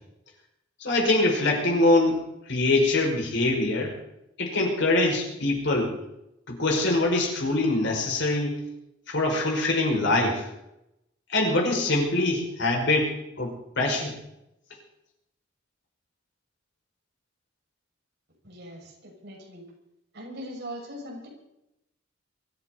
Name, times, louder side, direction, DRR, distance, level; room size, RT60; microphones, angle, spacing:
voice 1, 0.8-2.2 2.5-3.9 4.4-6.0 6.5-8.6 9.1-10.4 11.3-14.1, left 2 dB, 65° left, 0 dB, 5.6 m, -24 dB
voice 2, 18.4-19.6 20.1-21.3, equal, 60° right, -1 dB, 6.3 m, -40 dB
23.5 x 14.0 x 4.1 m, 0.85 s
head